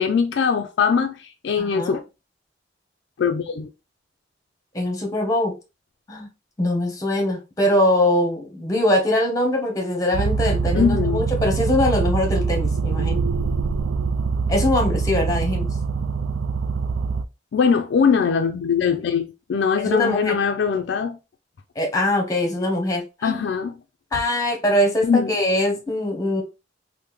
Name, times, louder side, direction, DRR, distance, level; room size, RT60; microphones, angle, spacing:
voice 1, 0.0-2.0 3.2-3.7 10.7-11.2 17.5-21.2 23.2-23.7 25.0-25.3, left 6 dB, 65° left, 0.3 m, -21 dB
voice 2, 1.6-2.0 4.7-5.5 6.1-6.3 6.6-13.2 14.5-15.7 19.8-20.4 21.8-23.5 24.1-26.4, left 1 dB, 20° left, 0.8 m, -22 dB
sound 1, 10.1-17.2, right 5 dB, 80° right, 0.3 m, -23 dB
3.4 x 2.1 x 3.0 m
head